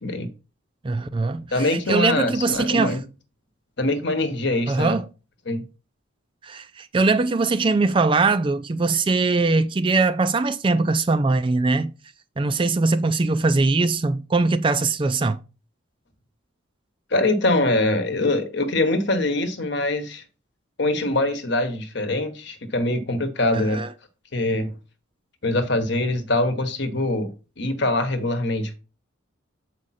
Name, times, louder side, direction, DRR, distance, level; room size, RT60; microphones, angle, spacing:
voice 1, 0.8-3.0 4.7-5.1 6.4-11.9 12.4-15.4 23.5-23.9, right 3 dB, 25° right, 0.3 m, -21 dB
voice 2, 1.5-3.0 3.8-5.0 5.5-5.6 17.1-20.2 20.8-23.8 24.3-24.7 25.4-27.3 27.6-28.7, left 2 dB, 55° left, 1.1 m, -23 dB
7.3 x 4.9 x 4.1 m
head